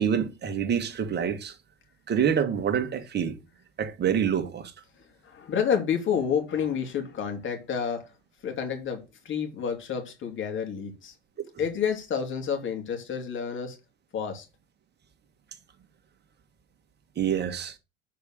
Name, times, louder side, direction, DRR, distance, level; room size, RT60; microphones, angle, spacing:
voice 1, 0.0-1.5 2.1-3.4 3.8-4.7 17.1-17.7, right 8 dB, 35° right, 1.6 m, -26 dB
voice 2, 5.2-8.0 8.4-11.1 11.6-13.8 14.1-14.4, left 7 dB, 40° left, 3.1 m, -29 dB
7.0 x 5.0 x 6.6 m
hypercardioid pair, 75°, 30 cm